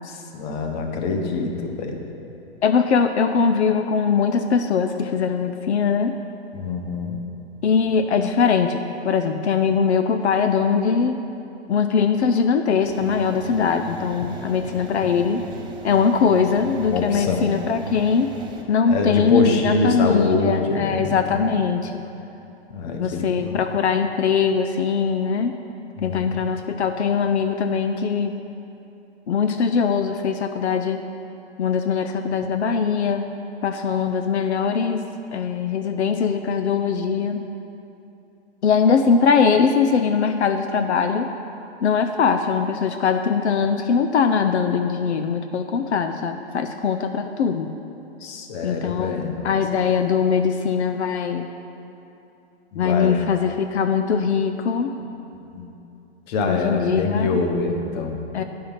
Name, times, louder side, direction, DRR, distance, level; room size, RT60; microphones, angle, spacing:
voice 1, 0.0-2.0 6.5-7.2 16.8-17.5 18.9-21.4 22.7-23.6 26.0-26.5 48.2-49.6 52.7-53.3 55.5-55.7 56.3-58.2, left 3 dB, 40° left, 3 dB, 1.2 m, -25 dB
voice 2, 2.6-6.2 7.6-11.2 11.7-15.5 15.8-18.3 18.7-22.0 22.9-25.6 26.0-28.3 29.3-31.0 31.6-33.2 33.6-35.0 35.3-37.4 38.6-41.3 41.8-47.7 48.6-51.5 52.8-55.0 56.4-57.4 58.3-58.4, left 6 dB, 80° left, 7 dB, 0.6 m, -21 dB
sound 1, 12.8-18.6, right 1 dB, 15° right, 0.8 m, -38 dB
9.5 x 5.6 x 5.7 m, 2.9 s
hypercardioid pair, 125°, 33 cm